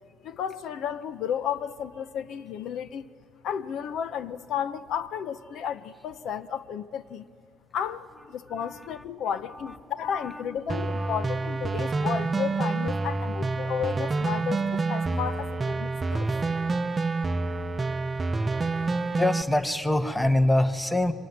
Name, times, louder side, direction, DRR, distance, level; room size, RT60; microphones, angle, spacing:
voice 1, 0.2-3.0 3.4-7.2 7.7-16.3, left 8 dB, 70° left, 0.8 m, -33 dB
voice 2, 8.6-9.1 9.5-10.6 10.9-11.2 19.1-21.1, left 1 dB, 5° left, 1.1 m, -26 dB
sound 1, 10.7-19.4, right 3 dB, 25° right, 0.7 m, -28 dB
25.5 x 23.0 x 9.5 m
cardioid pair, 120°, 0 cm